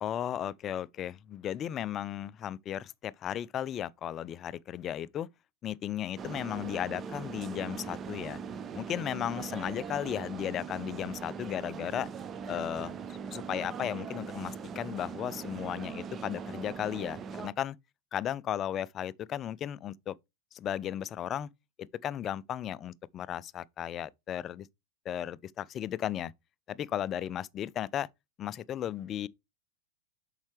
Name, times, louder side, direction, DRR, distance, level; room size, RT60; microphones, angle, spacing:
voice 1, 0.0-5.3 5.6-8.4 8.7-12.1 12.5-17.8 18.1-20.1 20.5-21.5 22.0-24.7 25.1-26.3 26.7-28.1 28.4-29.3, left 10 dB, 30° left, 0.4 m, -35 dB
sound 1, 6.2-17.5, right 6 dB, 25° right, 0.7 m, -40 dB
7.2 x 5.6 x 3.2 m
figure-of-eight pair, 90°, 0 cm